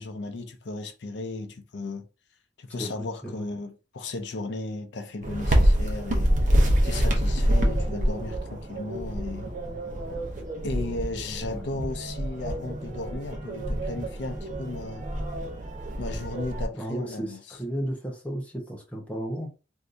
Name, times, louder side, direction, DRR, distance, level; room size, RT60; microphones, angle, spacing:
voice 1, 0.0-2.1 2.6-9.5 10.6-15.1 16.0-17.6, left 2 dB, 65° left, 0.5 m, -35 dB
voice 2, 2.8-3.5 11.5-11.7 16.7-19.5, right 1 dB, 5° left, 0.7 m, -34 dB
sound 1, 5.2-16.6, equal, 40° right, 0.7 m, -26 dB
3.4 x 2.6 x 2.5 m
head